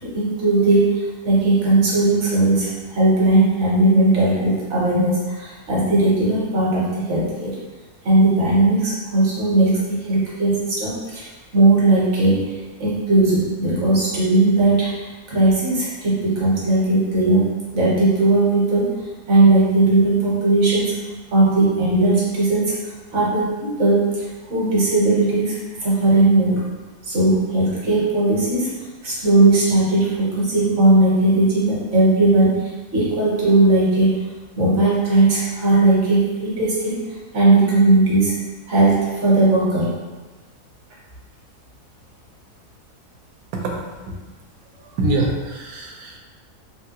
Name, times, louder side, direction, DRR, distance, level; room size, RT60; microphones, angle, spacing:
voice 1, 0.0-7.6 8.0-11.3 11.5-12.5 12.8-14.9 15.3-18.9 19.3-20.9 21.3-22.7 23.1-25.6 25.8-26.6 27.0-28.7 29.0-34.3 34.5-37.0 37.3-38.4 38.7-40.0, right 2 dB, 55° right, -6 dB, 1.1 m, -18 dB
voice 2, 43.5-44.1 44.7-46.2, right 2 dB, 75° right, 0 dB, 1.1 m, -25 dB
3.6 x 2.2 x 2.8 m, 1.3 s
omnidirectional pair, 1.7 m